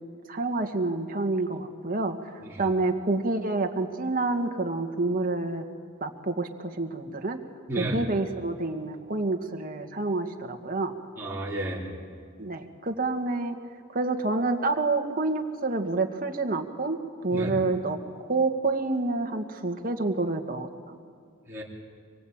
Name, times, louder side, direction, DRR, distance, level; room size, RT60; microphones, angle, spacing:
voice 1, 0.3-2.2 2.6-5.7 6.0-7.4 7.8-10.9 12.4-13.6 13.9-18.0 18.2-20.7, right 3 dB, 40° right, 4 dB, 1.9 m, -28 dB
voice 2, 7.7-8.1 11.2-11.9 17.3-17.5 21.5-21.6, right 1 dB, 10° right, -5 dB, 3.9 m, -32 dB
26.0 x 23.5 x 9.0 m, 2.2 s
head